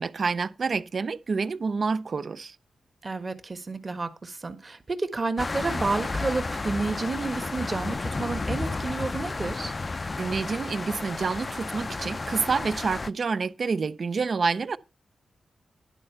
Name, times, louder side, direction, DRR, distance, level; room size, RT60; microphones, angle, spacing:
voice 1, 0.0-2.6 10.2-14.8, right 4 dB, 55° right, 0.5 m, -28 dB
voice 2, 3.0-9.7, right 3 dB, 40° right, 1.5 m, -30 dB
sound 1, 5.4-13.1, left 3 dB, 35° left, 0.4 m, -32 dB
11.0 x 4.4 x 6.9 m
cardioid pair, 65°, 0 cm